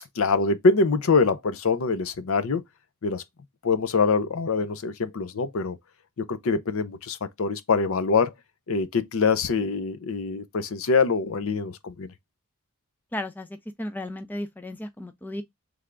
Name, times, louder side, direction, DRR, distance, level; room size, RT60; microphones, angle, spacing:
voice 1, 0.2-2.6 3.0-3.2 3.6-5.8 6.2-8.3 8.7-12.1, left 4 dB, 65° left, 0.5 m, -24 dB
voice 2, 13.1-15.4, left 1 dB, 10° left, 0.4 m, -34 dB
3.4 x 3.3 x 3.7 m
head